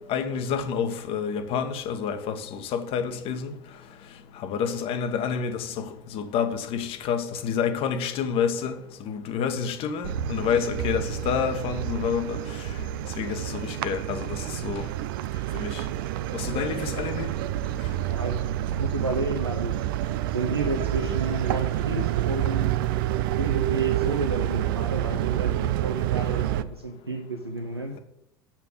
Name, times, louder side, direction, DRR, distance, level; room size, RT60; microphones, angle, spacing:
voice 1, 0.1-3.5 4.4-8.7 9.0-12.7 13.2-14.9 15.5-15.8 16.3-17.3 26.1-26.2, left 7 dB, 45° left, 1.3 m, -28 dB
sound 1, 10.0-26.6, right 13 dB, 60° right, 0.5 m, -28 dB
voice 2, 18.7-22.8 23.3-28.0, right 2 dB, 90° right, 0.9 m, -31 dB
7.3 x 7.3 x 8.2 m
figure-of-eight pair, 70°, 13 cm